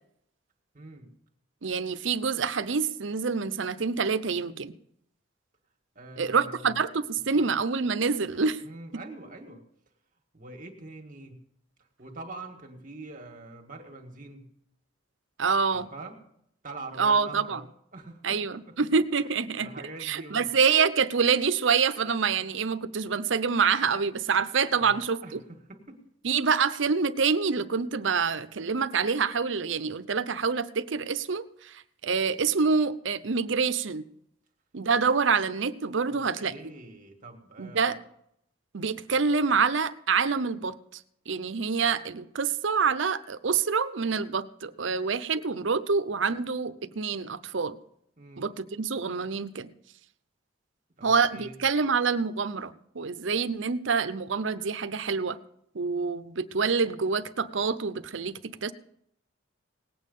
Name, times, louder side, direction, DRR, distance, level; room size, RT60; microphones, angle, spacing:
voice 1, 0.7-1.1 6.0-6.8 7.4-7.5 8.6-9.6 10.3-11.4 12.0-14.5 15.7-16.2 16.6-17.6 17.9-18.8 19.6-20.5 24.7-26.0 36.1-38.0 48.2-48.5 51.0-51.6, right 2 dB, 45° right, 1.8 m, -44 dB
voice 2, 1.6-4.8 6.2-8.6 15.4-15.9 17.0-17.6 18.2-19.7 20.0-25.4 26.2-34.0 34.7-36.7 37.6-38.0 38.7-40.7 41.3-47.8 48.4-49.7 51.0-55.4 55.7-58.7, right 5 dB, 70° right, 0.7 m, -26 dB
18.5 x 8.7 x 5.4 m
head